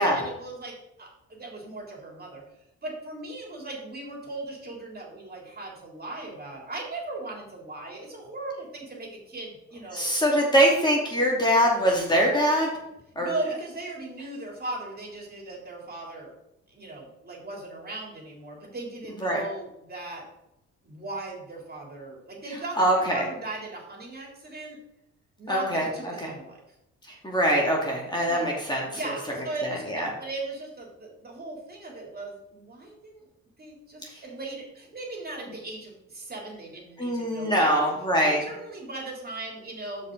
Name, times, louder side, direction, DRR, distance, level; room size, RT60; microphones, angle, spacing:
voice 1, 0.0-2.4 2.8-10.0 13.2-16.3 16.7-20.2 20.8-24.8 25.4-26.6 28.3-28.5 28.9-33.3 33.6-37.8 38.2-40.1, right 2 dB, 30° right, -1 dB, 3.5 m, -38 dB
voice 2, 9.9-12.7 13.2-13.3 19.2-19.4 22.8-23.3 25.5-26.3 27.1-29.0 29.7-30.1 34.0-34.2 37.0-38.4, equal, 15° left, -3 dB, 2.6 m, -23 dB
12.5 x 5.2 x 4.1 m, 0.86 s
cardioid pair, 90°, 30 cm